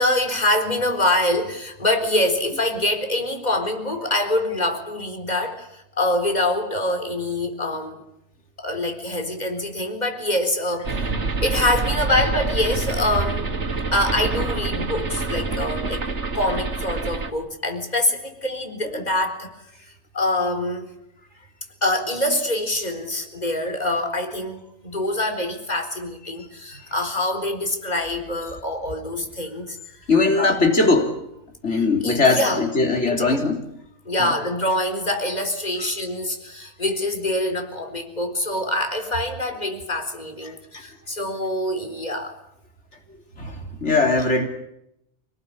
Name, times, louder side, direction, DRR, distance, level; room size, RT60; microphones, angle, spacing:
voice 1, 0.0-8.0 8.6-11.1 11.4-13.5 13.9-16.0 16.3-19.5 20.1-20.9 21.8-29.8 30.4-30.7 31.7-32.6 33.1-33.4 34.1-42.4, left 1 dB, 40° left, 6 dB, 4.2 m, -25 dB
sound 1, 10.8-17.3, right 3 dB, 80° right, 2.3 m, -26 dB
voice 2, 30.1-31.1 31.6-33.6 34.2-34.3 43.4-44.5, left 3 dB, 90° left, 4 dB, 3.9 m, -20 dB
28.0 x 19.5 x 9.9 m, 0.82 s
omnidirectional pair, 1.2 m